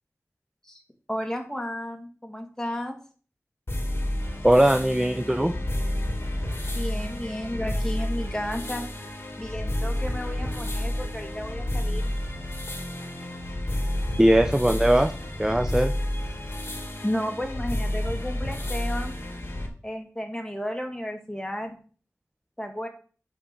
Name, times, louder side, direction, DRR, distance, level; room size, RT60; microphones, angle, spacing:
voice 1, 1.1-3.0 6.7-8.8 9.4-12.1 17.0-19.2 19.8-21.8 22.6-22.9, equal, 10° left, 3 dB, 2.0 m, -33 dB
sound 1, 3.7-19.7, left 1 dB, 45° left, 1.9 m, -30 dB
voice 2, 4.4-5.5 14.2-15.1 15.4-15.9, right 1 dB, 10° right, 8 dB, 0.6 m, -20 dB
8.7 x 4.6 x 5.3 m, 0.41 s
wide cardioid pair, 55°, 5 cm